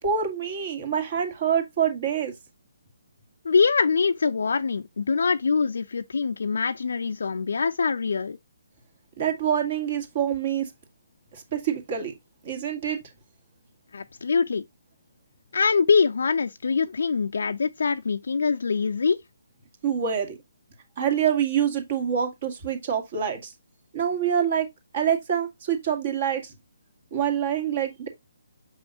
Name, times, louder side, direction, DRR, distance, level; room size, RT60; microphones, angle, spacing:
voice 1, 0.0-2.3 9.2-10.7 11.3-12.1 12.4-13.0 19.8-20.4 21.0-23.5 23.9-24.7 24.9-26.5 27.1-28.1, right 8 dB, 45° right, 1.9 m, -26 dB
voice 2, 3.4-8.4 13.9-14.6 15.5-19.2, left 5 dB, 65° left, 0.4 m, -24 dB
6.9 x 5.5 x 2.5 m
figure-of-eight pair, 140°, 0 cm